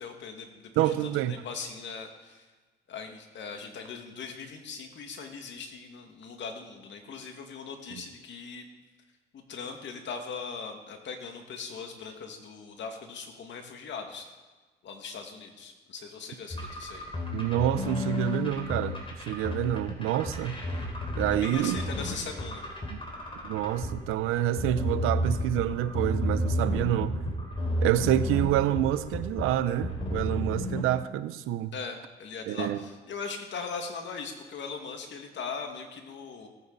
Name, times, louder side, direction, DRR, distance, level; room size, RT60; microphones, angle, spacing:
voice 1, 0.0-2.5 2.9-8.7 9.3-14.3 14.8-17.1 21.3-22.6 31.7-36.5, left 5 dB, 60° left, 4 dB, 2.1 m, -40 dB
voice 2, 0.8-1.4 17.3-19.0 19.3-20.6 21.2-21.8 22.9-23.0 23.4-27.2 27.8-31.7 32.5-32.8, right 12 dB, 85° right, 14 dB, 0.7 m, -27 dB
sound 1, 16.5-30.8, left 1 dB, 25° left, 3.4 m, -32 dB
18.0 x 9.2 x 4.1 m, 1.3 s
cardioid pair, 85°, 21 cm